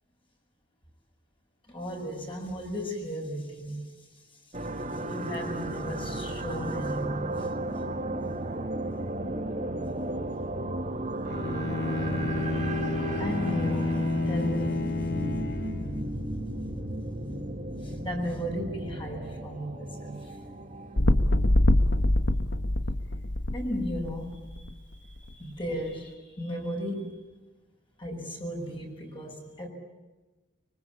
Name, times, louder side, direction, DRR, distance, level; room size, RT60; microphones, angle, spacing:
voice 1, 1.7-3.9 5.1-7.5 13.2-15.1 17.8-20.3 23.5-24.7 25.0-25.1 25.4-27.1 28.0-29.7, equal, 30° left, 2 dB, 6.7 m, -35 dB
sound 1, 4.5-21.0, right 1 dB, 45° right, 2.7 m, -34 dB
Bowed string instrument, 11.2-16.1, left 3 dB, 65° left, 2.1 m, -30 dB
sound 2, 21.0-24.7 25.3-25.4, left 1 dB, 90° left, 1.5 m, -24 dB
25.0 x 24.5 x 8.5 m, 1.2 s
head